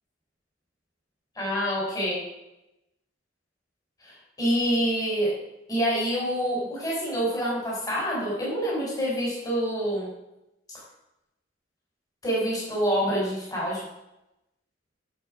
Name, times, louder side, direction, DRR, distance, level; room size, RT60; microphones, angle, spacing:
voice 1, 1.4-2.2 4.0-5.3 5.7-10.1 12.2-13.8, equal, 20° left, -5 dB, 4.3 m, -26 dB
11.0 x 7.5 x 5.0 m, 0.90 s
head